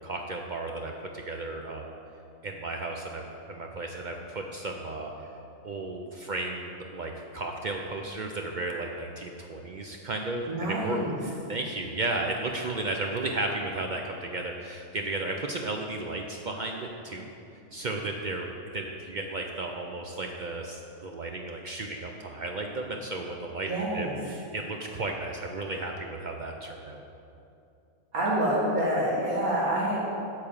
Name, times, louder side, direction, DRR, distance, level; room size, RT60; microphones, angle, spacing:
voice 1, 0.0-1.9 2.4-5.3 5.6-17.3 17.7-18.5 18.7-27.1, right 2 dB, 65° right, 2 dB, 0.4 m, -34 dB
voice 2, 10.5-11.1 23.7-24.1 28.1-30.0, right 1 dB, 85° right, -6 dB, 2.4 m, -27 dB
8.5 x 4.9 x 7.2 m, 2.6 s
omnidirectional pair, 1.5 m